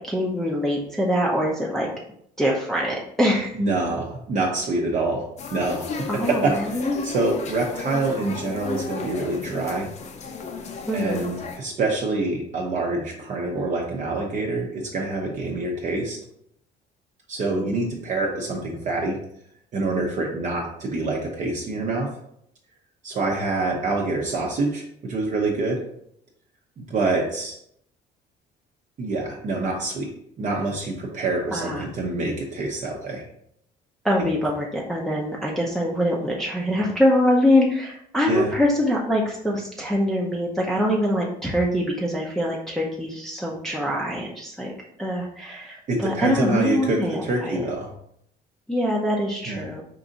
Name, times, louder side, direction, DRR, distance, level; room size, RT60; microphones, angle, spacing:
voice 1, 0.0-1.9 2.4-3.6 6.1-7.0 10.9-11.3 31.5-31.9 34.0-44.7 45.0-47.5 48.7-49.8, left 1 dB, ahead, -4 dB, 0.6 m, -24 dB
voice 2, 3.6-9.9 10.9-16.2 17.3-19.2 19.7-22.1 23.0-25.8 26.8-27.6 29.0-30.1 30.4-33.2 38.3-38.5 45.9-47.9 49.5-49.6, right 2 dB, 45° right, -1 dB, 0.8 m, -26 dB
sound 1, 5.4-11.6, left 5 dB, 45° left, 0.6 m, -34 dB
4.7 x 2.6 x 3.9 m, 0.72 s
cardioid pair, 110°, 17 cm